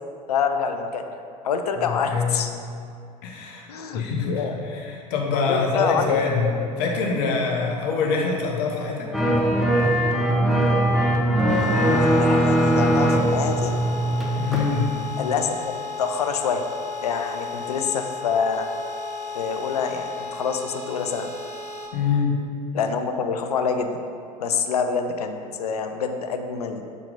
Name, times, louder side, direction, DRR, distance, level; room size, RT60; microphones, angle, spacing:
voice 1, 0.3-1.1 1.4-2.5 3.7-4.6 5.3-6.2 11.6-13.8 15.2-16.7 17.0-18.7 19.3-21.3 22.7-24.0 24.4-26.8, left 6 dB, 75° left, 6 dB, 0.5 m, -26 dB
voice 2, 1.8-2.5 3.2-3.7 3.9-9.1 14.4-15.0 21.9-22.4, left 4 dB, 50° left, 0 dB, 1.0 m, -24 dB
sound 1, 9.1-14.7 15.0-15.1, right 1 dB, ahead, 0.9 m, -20 dB
sound 2, 11.5-21.9, left 4 dB, 35° left, 1.2 m, -34 dB
6.1 x 4.4 x 3.8 m, 2.5 s
figure-of-eight pair, 70°, 20 cm